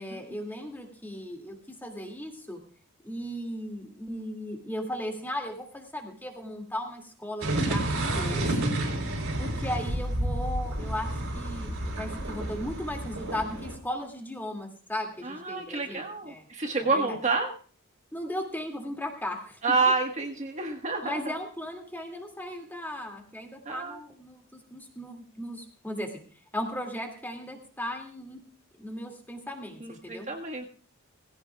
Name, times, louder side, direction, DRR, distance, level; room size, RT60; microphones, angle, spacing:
voice 1, 0.0-2.6 3.0-8.5 9.4-16.4 16.8-17.2 18.1-19.6 21.0-26.2 26.5-28.4 28.8-30.3, left 1 dB, 10° left, 2 dB, 2.4 m, -36 dB
sound 1, 7.4-13.8, right 1 dB, 65° right, 3.8 m, -30 dB
voice 2, 15.2-17.5 19.6-21.4 23.6-24.0 29.8-30.7, right 3 dB, 35° right, 2 dB, 1.6 m, -29 dB
19.0 x 16.5 x 2.4 m, 0.40 s
head